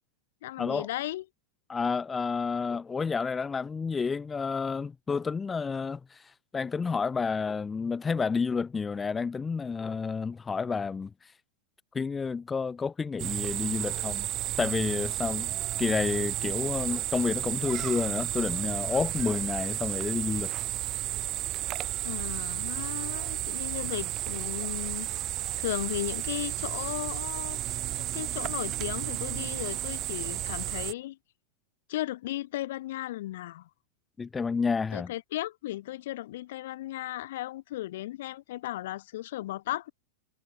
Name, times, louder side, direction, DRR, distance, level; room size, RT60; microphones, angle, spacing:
voice 1, 0.4-1.2 22.0-25.1 25.6-27.6 28.0-31.2 31.9-33.7 34.9-39.9, left 15 dB, 65° left, 5.9 m, -35 dB
voice 2, 1.7-11.3 11.9-14.2 14.6-15.5 15.8-20.5 34.2-35.1, left 5 dB, 10° left, 1.4 m, -30 dB
sound 1, 13.2-30.9, right 14 dB, 30° right, 0.5 m, -32 dB
supercardioid pair, 160°, 0 cm